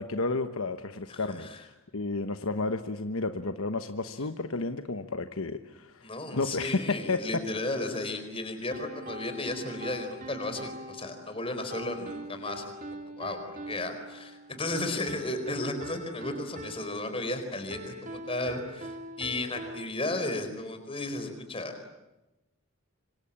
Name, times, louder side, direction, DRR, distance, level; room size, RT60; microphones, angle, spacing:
voice 1, 0.0-7.2, left 3 dB, 70° left, 8 dB, 1.2 m, -32 dB
voice 2, 1.1-1.6 6.0-13.4 13.7-21.7, left 2 dB, 25° left, 7 dB, 4.5 m, -34 dB
sound 1, 8.7-19.9, right 1 dB, 35° right, 2.4 m, -43 dB
26.0 x 26.0 x 8.7 m, 0.98 s
head